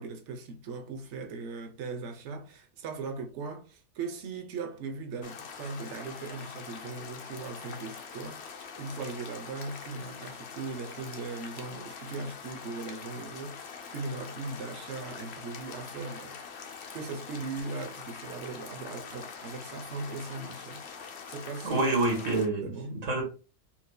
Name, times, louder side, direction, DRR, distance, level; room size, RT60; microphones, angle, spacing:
voice 1, 0.0-16.4 16.9-20.8 21.3-21.9 22.6-22.9, right 4 dB, 70° right, 1.0 m, -39 dB
sound 1, 5.2-22.5, left 6 dB, 60° left, 0.9 m, -44 dB
voice 2, 21.6-23.2, right 2 dB, 90° right, 1.8 m, -27 dB
4.4 x 2.7 x 2.2 m
omnidirectional pair, 1.3 m